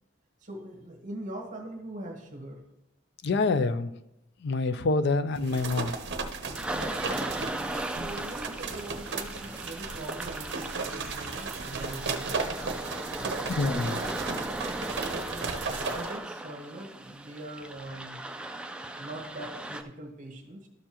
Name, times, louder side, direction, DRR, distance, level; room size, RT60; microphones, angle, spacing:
voice 1, 0.4-2.6 6.7-13.7 14.0-14.6 15.1-18.2 19.0-20.7, right 1 dB, 40° right, 1 dB, 1.3 m, -42 dB
voice 2, 3.2-3.9 4.4-5.9 13.6-14.0, left 3 dB, 60° left, 13 dB, 0.5 m, -26 dB
sound 1, 5.4-16.2, right 4 dB, 60° right, 0.8 m, -35 dB
sound 2, 6.5-19.8, right 1 dB, 5° right, 0.4 m, -37 dB
12.5 x 6.8 x 3.0 m, 0.87 s
head